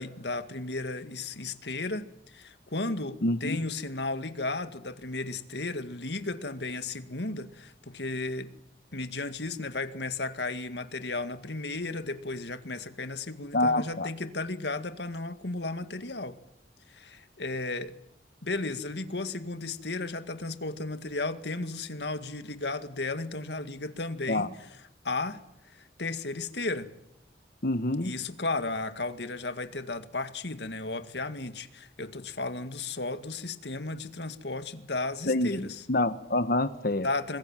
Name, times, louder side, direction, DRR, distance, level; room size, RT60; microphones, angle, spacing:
voice 1, 0.0-8.5 8.9-16.4 16.9-17.9 18.4-24.5 25.0-25.4 25.7-26.9 28.0-35.8 37.0-37.4, left 3 dB, 75° left, 2.0 m, -34 dB
voice 2, 3.2-3.6 13.5-14.1 24.3-24.5 27.6-28.1 35.3-37.1, left 2 dB, 55° left, 1.3 m, -27 dB
26.5 x 21.5 x 9.1 m
head